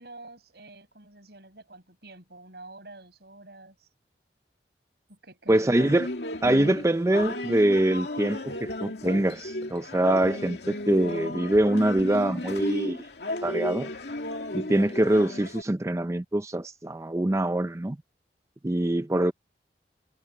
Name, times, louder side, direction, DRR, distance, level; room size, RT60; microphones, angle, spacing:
voice 1, 0.0-3.9 5.1-5.8, right 2 dB, 65° right, 7.2 m, -48 dB
voice 2, 5.5-6.1 6.4-13.0 13.4-13.9 14.5-18.0 18.6-19.3, right 1 dB, 15° right, 0.5 m, -24 dB
sound 1, 5.8-15.6, left 1 dB, 70° left, 2.4 m, -34 dB
head